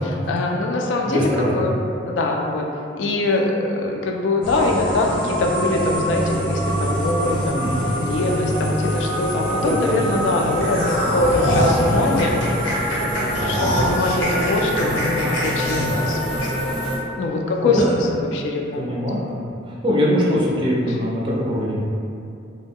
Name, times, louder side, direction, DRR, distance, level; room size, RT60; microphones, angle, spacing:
voice 1, 0.3-1.7 2.1-2.7 2.9-7.6 8.0-12.5 12.8-16.5 17.2-18.9, left 2 dB, 70° left, 1 dB, 0.3 m, -23 dB
voice 2, 1.1-1.6 7.5-7.8 9.5-10.1 13.4-13.6 15.7-15.9 17.6-17.8 18.2-18.4 18.8-22.0, equal, 25° right, -5 dB, 0.4 m, -23 dB
sound 1, 4.4-17.0, equal, 5° left, 0.7 m, -25 dB
sound 2, 10.6-16.9 17.2-17.3 17.8-17.9, equal, 90° left, 0.7 m, -24 dB
2.3 x 2.0 x 3.4 m, 2.5 s
head